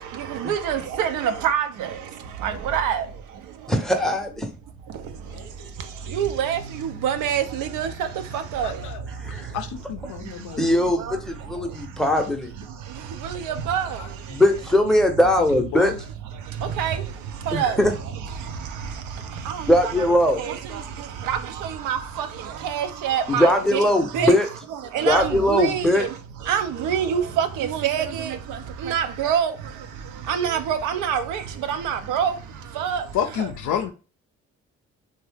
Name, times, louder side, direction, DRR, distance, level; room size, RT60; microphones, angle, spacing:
voice 1, 0.0-3.8 4.9-12.3 12.6-14.4 16.3-24.3 24.7-33.5, right 8 dB, 80° right, 0.5 m, -28 dB
voice 2, 3.7-4.5 9.2-9.5 10.6-12.5 14.3-15.9 17.5-17.9 19.7-20.4 23.3-24.5 25.0-26.0, left 1 dB, ahead, 0.6 m, -20 dB
voice 3, 5.3-5.7 8.6-9.0 9.5-10.7 10.9-11.1 15.4-16.0 33.1-33.9, left 9 dB, 75° left, 0.5 m, -30 dB
2.7 x 2.1 x 3.3 m
supercardioid pair, 55°, 30 cm